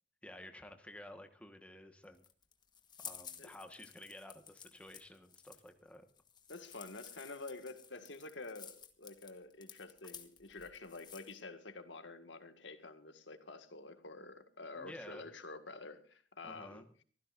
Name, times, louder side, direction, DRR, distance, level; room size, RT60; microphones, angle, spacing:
voice 1, 0.2-2.2 3.0-6.1 14.8-15.2 16.4-16.9, left 1 dB, 5° left, 1.4 m, -52 dB
sound 1, 2.0-11.4, left 8 dB, 25° left, 1.4 m, -53 dB
voice 2, 6.5-16.9, left 3 dB, 85° left, 1.9 m, -49 dB
25.0 x 15.0 x 2.6 m
head